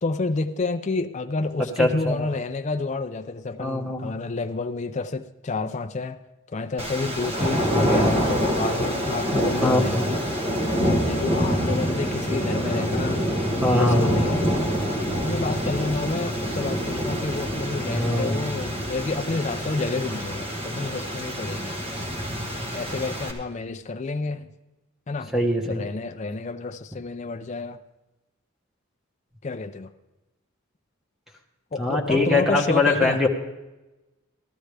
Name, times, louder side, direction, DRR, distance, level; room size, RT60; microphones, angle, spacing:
voice 1, 0.0-6.2 6.5-10.2 10.8-13.2 13.5-14.5 15.2-21.8 22.7-24.5 25.1-25.3 25.7-27.8 29.4-29.9 31.7-33.2, left 3 dB, 30° left, 0.4 m, -29 dB
voice 2, 1.8-2.3 3.6-4.1 9.6-10.0 13.6-14.2 17.9-18.4 25.3-25.9 31.8-33.3, left 2 dB, ahead, 1.2 m, -22 dB
sound 1, 6.8-23.3, equal, 25° right, 1.3 m, -26 dB
14.5 x 12.5 x 3.4 m
head